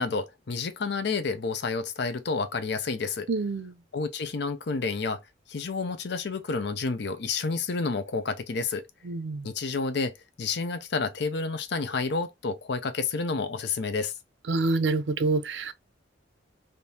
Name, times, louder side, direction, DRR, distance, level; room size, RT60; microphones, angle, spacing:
voice 1, 0.0-3.3 3.9-5.2 5.5-8.8 9.4-14.1, left 4 dB, 65° left, 0.6 m, -30 dB
voice 2, 3.3-3.7 9.0-9.5 14.5-15.7, right 3 dB, 70° right, 0.5 m, -27 dB
3.6 x 2.7 x 2.8 m
head